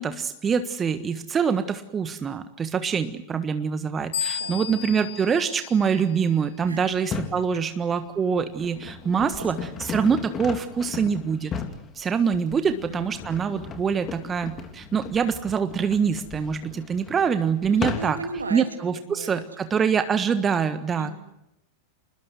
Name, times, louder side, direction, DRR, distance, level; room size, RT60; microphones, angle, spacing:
voice 1, 0.0-11.5 12.0-18.2 18.5-21.1, right 6 dB, 20° right, 10 dB, 1.5 m, -25 dB
sound 1, 4.1-6.6, left 8 dB, 60° left, 3.6 m, -34 dB
voice 2, 6.6-7.0 9.3-9.7 12.6-13.2 17.7-18.7 18.9-19.4 20.9-21.1, right 3 dB, 75° right, 6 dB, 3.3 m, -37 dB
sound 2, 6.9-7.4 8.1-18.4, left 6 dB, 25° left, 3.2 m, -36 dB
28.5 x 20.5 x 8.0 m, 0.82 s
figure-of-eight pair, 90°, 0 cm